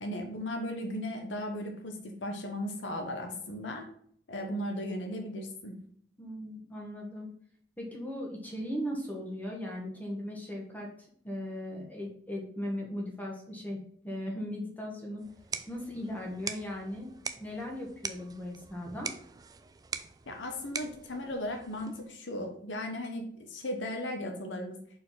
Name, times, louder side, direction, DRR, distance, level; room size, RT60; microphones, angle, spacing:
voice 1, 0.0-3.9 4.3-5.8 20.3-24.8, left 1 dB, 80° left, 3 dB, 1.1 m, -36 dB
voice 2, 6.2-7.3 7.8-10.9 11.2-15.3 15.7-17.1 17.4-19.1, equal, 10° left, -2 dB, 1.3 m, -38 dB
sound 1, 15.2-22.2, right 5 dB, 20° right, 0.3 m, -42 dB
4.5 x 4.4 x 5.6 m, 0.63 s
head